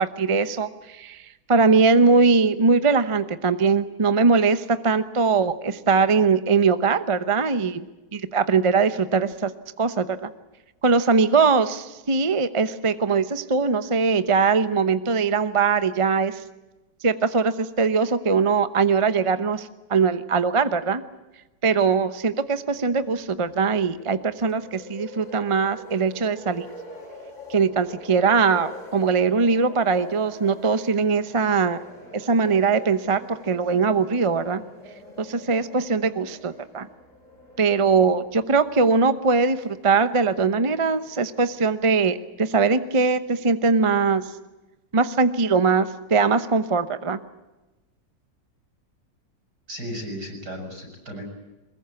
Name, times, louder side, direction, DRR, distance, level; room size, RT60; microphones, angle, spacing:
voice 1, 0.0-7.8 8.1-9.5 9.8-10.3 10.8-16.4 17.0-21.0 21.6-26.7 27.5-31.8 32.1-34.6 35.2-36.9 37.6-44.2 44.9-47.2, right 4 dB, 30° right, 12 dB, 0.6 m, -21 dB
sound 1, 22.7-41.8, left 1 dB, 20° left, 5.5 m, -45 dB
voice 2, 49.7-51.3, equal, 65° right, 3 dB, 6.9 m, -35 dB
23.0 x 21.0 x 8.4 m, 1.1 s
omnidirectional pair, 1.9 m